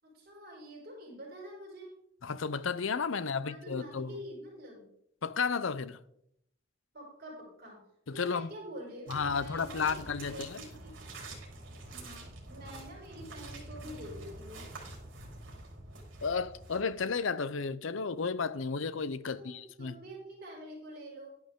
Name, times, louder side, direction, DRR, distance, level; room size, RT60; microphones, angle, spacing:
voice 1, 0.0-2.0 3.1-4.9 6.9-7.8 8.1-10.9 11.9-14.7 19.2-21.3, equal, 50° right, 5.0 m, -47 dB
voice 2, 2.2-4.1 5.2-6.0 8.1-8.5 9.1-10.6 16.2-20.0, left 5 dB, 75° left, 0.6 m, -33 dB
sound 1, 9.1-17.2, right 2 dB, 65° right, 4.0 m, -47 dB
11.5 x 10.5 x 3.7 m
head